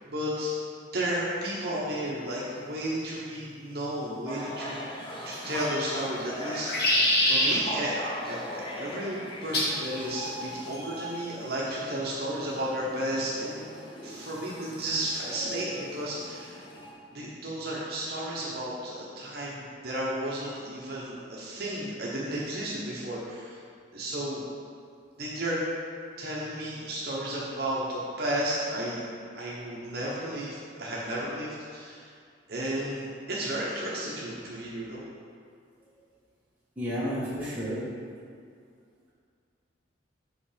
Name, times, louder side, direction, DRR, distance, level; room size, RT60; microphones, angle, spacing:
voice 1, 0.1-0.5 0.9-4.8 5.2-8.0 8.2-13.6 14.0-16.6 17.1-23.6 23.9-24.4 25.2-25.6 26.2-29.0 29.3-32.1 32.5-35.0, right 1 dB, 55° right, -6 dB, 1.1 m, -33 dB
sound 1, 4.2-16.9, equal, 25° left, 0.9 m, -40 dB
sound 2, 5.5-6.0 6.5-7.5 9.5-9.8 10.7-11.1, left 1 dB, 50° left, 1.4 m, -25 dB
voice 2, 36.8-37.8, equal, 10° right, -10 dB, 1.9 m, -31 dB
6.5 x 5.2 x 5.1 m, 2.3 s
head